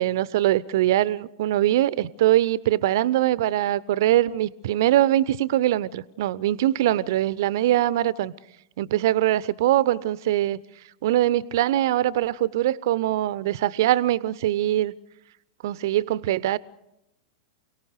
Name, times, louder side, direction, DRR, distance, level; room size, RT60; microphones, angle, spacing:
voice 1, 0.0-8.3 8.8-10.6 11.0-14.9 15.6-16.6, right 14 dB, 55° right, 20 dB, 0.8 m, -22 dB
28.5 x 18.5 x 6.6 m, 0.84 s
figure-of-eight pair, 95°, 2 cm